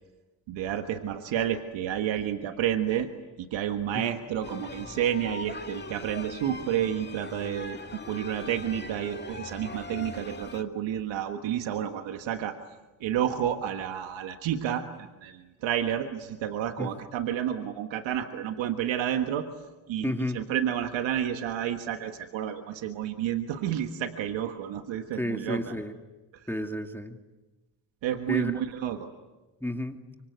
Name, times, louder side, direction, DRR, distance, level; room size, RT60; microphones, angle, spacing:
voice 1, 0.5-3.1 3.4-7.8 8.1-12.6 13.0-19.5 19.9-25.8 26.3-26.4 28.0-29.1, right 10 dB, 90° right, 6 dB, 1.5 m, -30 dB
sound 1, 4.4-10.6, left 3 dB, 25° left, 2.0 m, -41 dB
voice 2, 20.0-20.4 25.2-25.9 26.5-27.2 28.3-28.6 29.6-30.0, left 1 dB, 5° left, 4 dB, 2.5 m, -31 dB
25.5 x 25.0 x 9.3 m, 1.1 s
supercardioid pair, 55°, 44 cm